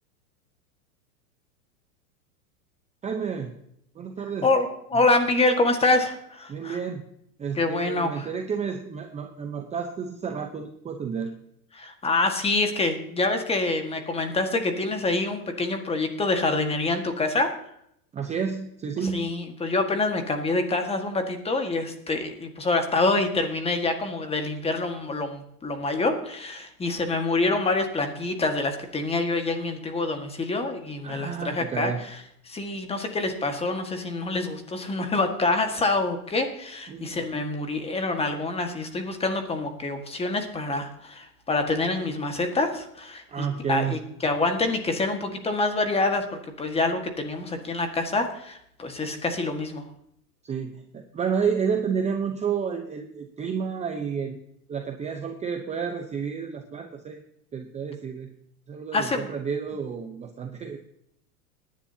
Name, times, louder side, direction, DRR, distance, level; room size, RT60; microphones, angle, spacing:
voice 1, 3.0-3.5 3.9-4.5 4.9-5.0 6.5-7.0 7.4-11.3 18.1-19.3 31.0-32.0 36.9-37.3 43.3-44.0 50.4-54.4 54.7-57.2 57.5-58.3 58.7-60.8, right 6 dB, 15° right, 4 dB, 0.8 m, -30 dB
voice 2, 4.4-6.8 7.5-8.3 11.7-17.5 19.0-32.2 32.4-46.2 46.6-49.8 58.9-59.3, left 2 dB, 15° left, 6 dB, 1.7 m, -26 dB
19.0 x 10.5 x 2.8 m, 0.73 s
supercardioid pair, 140°, 45 cm